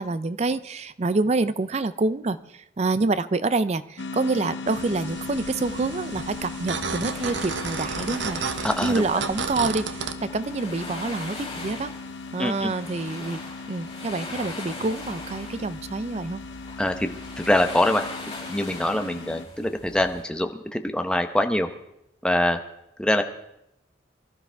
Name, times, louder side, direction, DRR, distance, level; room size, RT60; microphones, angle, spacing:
voice 1, 0.0-8.4 8.8-11.9 12.3-13.4 13.7-16.4, right 3 dB, 35° right, 14 dB, 0.4 m, -27 dB
sound 1, 4.0-19.5, left 4 dB, 65° left, 0.6 m, -38 dB
sound 2, 4.7-10.1, right 5 dB, 70° right, 0.9 m, -33 dB
sound 3, 5.5-20.2, left 2 dB, 25° left, 6.0 m, -41 dB
voice 2, 8.6-9.2 12.4-12.7 16.8-18.0 18.5-21.7 22.2-22.6 23.0-23.2, left 1 dB, 5° left, 6 dB, 0.8 m, -24 dB
24.0 x 13.0 x 3.4 m, 0.82 s
head